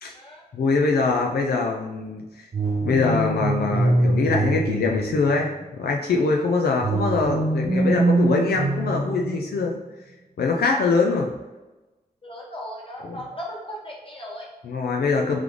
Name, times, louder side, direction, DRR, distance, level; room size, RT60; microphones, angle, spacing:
voice 1, 0.5-2.5 2.8-9.8 10.4-11.3 13.0-13.2 14.6-15.4, left 4 dB, 85° left, 0 dB, 0.5 m, -23 dB
sound 1, 2.5-5.7 6.8-9.7, right 2 dB, 50° right, 0.9 m, -24 dB
voice 2, 12.2-14.5, equal, 35° left, -2 dB, 1.2 m, -37 dB
3.8 x 3.2 x 3.4 m, 1.1 s
wide cardioid pair, 80°, 16 cm